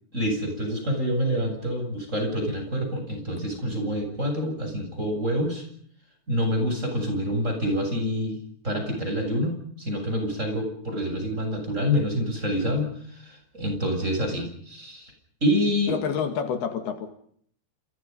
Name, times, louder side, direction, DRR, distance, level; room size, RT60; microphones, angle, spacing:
voice 1, 0.1-5.7 6.3-8.4 8.6-15.1 15.4-15.9, equal, 15° right, 4 dB, 8.1 m, -27 dB
voice 2, 15.9-17.1, left 7 dB, 70° left, 7 dB, 3.9 m, -28 dB
30.0 x 27.5 x 5.5 m, 0.64 s
omnidirectional pair, 4.8 m